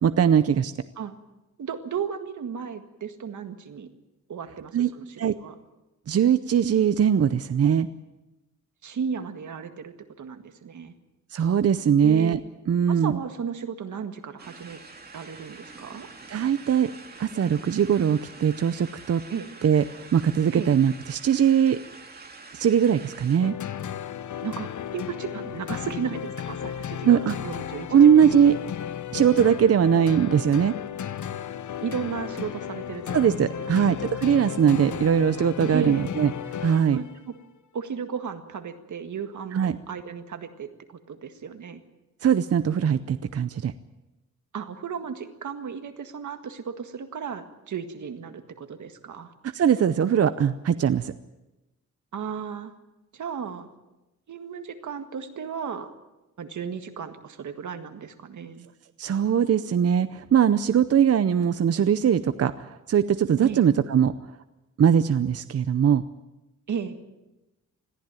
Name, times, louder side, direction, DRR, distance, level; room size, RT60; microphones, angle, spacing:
voice 1, 0.0-0.7 4.7-4.9 5.2-5.3 6.1-7.9 11.3-12.4 12.7-13.1 16.3-16.9 17.2-19.2 19.6-21.8 22.5-23.5 27.0-27.3 27.9-28.5 29.1-30.7 33.1-37.0 39.5-39.8 42.2-43.7 49.5-51.1 59.0-64.1 64.8-66.0, right 8 dB, 55° right, 12 dB, 0.7 m, -21 dB
voice 2, 1.6-3.9 4.3-5.6 8.8-10.9 12.0-12.4 12.9-14.8 15.1-16.1 19.3-19.5 20.5-20.7 24.4-28.2 31.8-33.2 33.6-33.9 34.8-35.0 35.7-36.1 36.9-37.3 37.7-41.8 44.5-49.3 52.1-52.7 53.1-53.7 54.3-55.9 56.4-58.7 63.4-63.6 66.7-67.0, right 7 dB, 85° right, 8 dB, 1.8 m, -35 dB
sound 1, 14.4-23.4, right 3 dB, 35° right, 2.5 m, -46 dB
sound 2, 23.4-37.2, left 9 dB, 80° left, 1.0 m, -34 dB
21.0 x 15.0 x 9.1 m, 1.0 s
wide cardioid pair, 140°, 29 cm